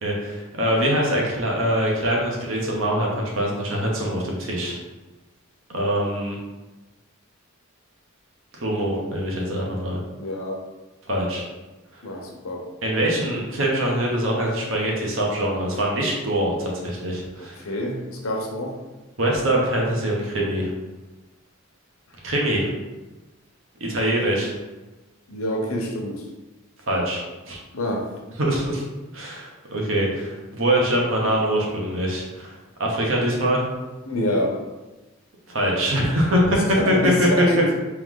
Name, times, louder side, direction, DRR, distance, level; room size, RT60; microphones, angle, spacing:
voice 1, 0.0-4.8 5.7-6.4 8.6-10.0 11.1-11.4 12.8-17.7 19.2-20.7 22.2-22.7 23.8-24.5 26.8-27.6 28.4-28.8 29.1-33.7 35.5-37.4, right 1 dB, 70° right, -2 dB, 1.0 m, -23 dB
voice 2, 10.2-10.6 12.0-12.6 17.4-18.7 23.8-24.0 25.3-26.2 27.7-28.1 34.1-34.5 36.8-37.6, left 1 dB, 90° left, 1 dB, 0.8 m, -27 dB
3.3 x 3.0 x 3.7 m, 1.1 s
head